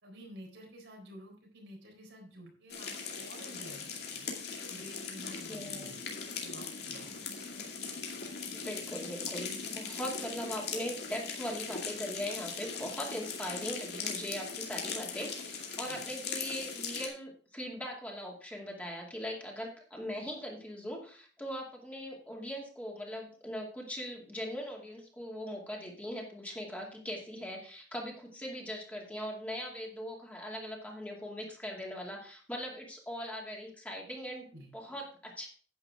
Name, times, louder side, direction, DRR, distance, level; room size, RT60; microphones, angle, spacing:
voice 1, 0.0-6.0 6.4-7.1 15.8-16.1 34.5-34.7, equal, 85° right, 1 dB, 4.0 m, -51 dB
sound 1, 2.7-17.1, left 5 dB, 60° left, 2.3 m, -40 dB
voice 2, 5.5-5.9 8.5-34.5 34.7-35.5, equal, 10° left, -2 dB, 2.4 m, -40 dB
10.0 x 8.8 x 3.6 m, 0.42 s
head